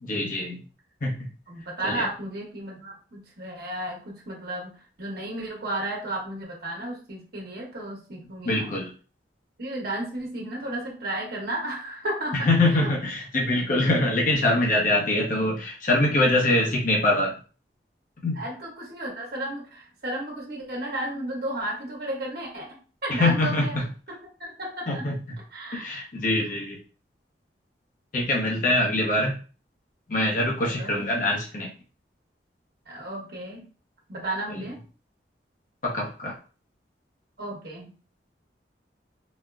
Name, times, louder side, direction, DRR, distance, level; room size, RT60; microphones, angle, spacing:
voice 1, 0.0-0.6 1.0-1.3 1.8-2.1 8.4-8.9 12.4-17.3 18.2-18.4 23.1-23.9 24.9-25.4 25.7-26.8 28.1-29.4 30.1-31.7 34.5-34.7 35.8-36.3, left 1 dB, 50° left, -2 dB, 0.8 m, -24 dB
voice 2, 1.5-4.7 5.0-8.7 9.6-12.9 18.4-23.7 24.1-25.1 25.5-25.8 30.6-30.9 32.9-33.6 34.1-34.8 37.4-37.9, right 1 dB, 60° right, -2 dB, 1.2 m, -33 dB
4.1 x 2.1 x 2.4 m, 0.37 s
head